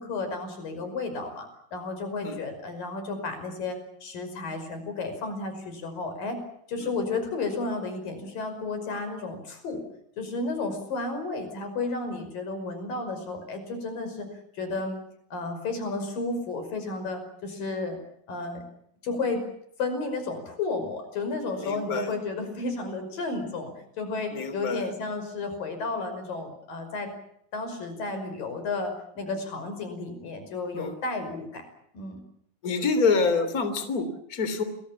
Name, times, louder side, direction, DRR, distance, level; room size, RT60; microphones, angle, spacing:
voice 1, 0.0-6.4 6.7-9.8 10.2-14.3 14.5-15.0 15.3-18.0 18.3-18.6 19.0-19.4 19.8-27.1 27.5-31.7 31.9-32.2, left 3 dB, 85° left, 8 dB, 7.1 m, -32 dB
voice 2, 21.6-22.1 24.3-24.8 30.7-30.9 32.6-34.6, left 4 dB, 25° left, 10 dB, 3.5 m, -26 dB
29.0 x 22.0 x 7.2 m, 0.73 s
omnidirectional pair, 3.8 m